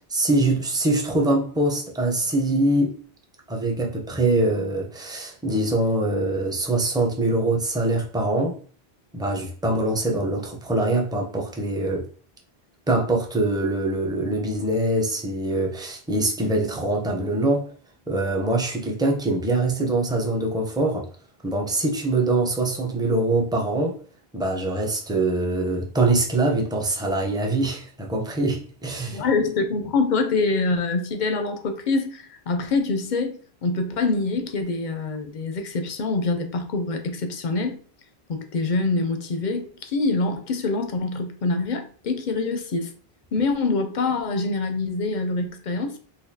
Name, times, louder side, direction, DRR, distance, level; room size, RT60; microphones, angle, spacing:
voice 1, 0.1-3.0 3.5-8.6 9.1-12.1 12.9-17.7 18.1-21.1 21.4-24.0 24.3-29.2, right 2 dB, 5° right, 0.5 m, -23 dB
voice 2, 29.1-37.8 38.3-42.9 43.3-46.0, left 3 dB, 55° left, 0.6 m, -25 dB
4.0 x 2.6 x 2.7 m
omnidirectional pair, 1.1 m